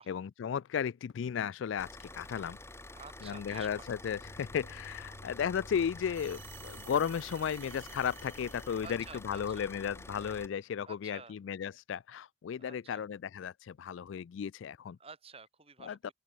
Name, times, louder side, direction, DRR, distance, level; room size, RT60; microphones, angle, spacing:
voice 1, 0.0-2.6 3.2-15.0 15.8-16.1, left 7 dB, 75° left, 0.3 m, -35 dB
Car / Idling, 1.8-10.5, left 2 dB, 15° left, 3.8 m, -49 dB
voice 2, 2.9-4.0 8.8-9.7 10.8-11.4 12.6-13.0 15.0-16.1, right 4 dB, 30° right, 7.4 m, -51 dB
sound 1, 4.2-9.9, left 1 dB, 60° left, 2.7 m, -55 dB
sound 2, 6.1-9.5, right 13 dB, 85° right, 3.7 m, -54 dB
open air
head